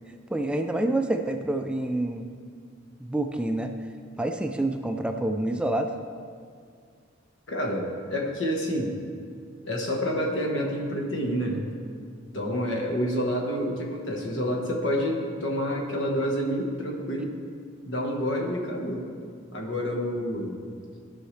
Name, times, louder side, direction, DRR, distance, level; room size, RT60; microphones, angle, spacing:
voice 1, 0.3-2.3 3.0-3.7 4.2-5.9, right 1 dB, 5° right, 5 dB, 0.3 m, -27 dB
voice 2, 7.5-9.0 9.6-11.6 12.3-17.3 17.8-19.0 19.5-20.7, equal, 80° left, 1 dB, 1.4 m, -28 dB
14.5 x 5.6 x 3.3 m, 2.2 s
head